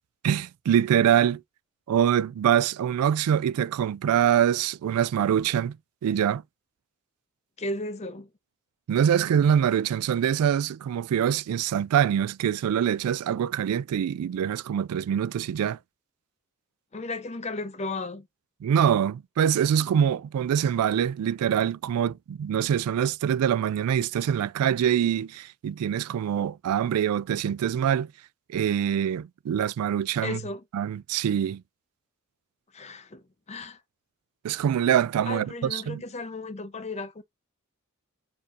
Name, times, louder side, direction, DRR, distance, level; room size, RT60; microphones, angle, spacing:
voice 1, 0.2-1.4 1.9-5.8 6.0-6.4 8.9-15.8 18.6-28.1 28.5-30.4 30.7-31.6 34.4-36.0, right 9 dB, 75° right, 0.3 m, -24 dB
voice 2, 7.6-8.3 16.9-18.3 30.2-30.6 32.7-33.8 35.3-37.2, left 2 dB, 30° left, 0.6 m, -35 dB
6.5 x 2.7 x 2.4 m
head